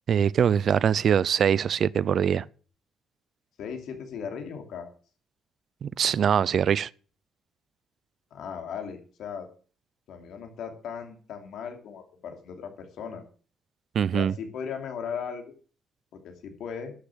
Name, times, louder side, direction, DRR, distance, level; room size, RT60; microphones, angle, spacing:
voice 1, 0.1-2.4 5.8-6.9 13.9-14.3, right 8 dB, 60° right, 0.4 m, -23 dB
voice 2, 3.6-4.9 8.3-9.5 10.1-13.2 14.1-15.4 16.1-16.9, left 7 dB, 75° left, 2.8 m, -37 dB
11.5 x 6.8 x 7.5 m
cardioid pair, 90°, 0 cm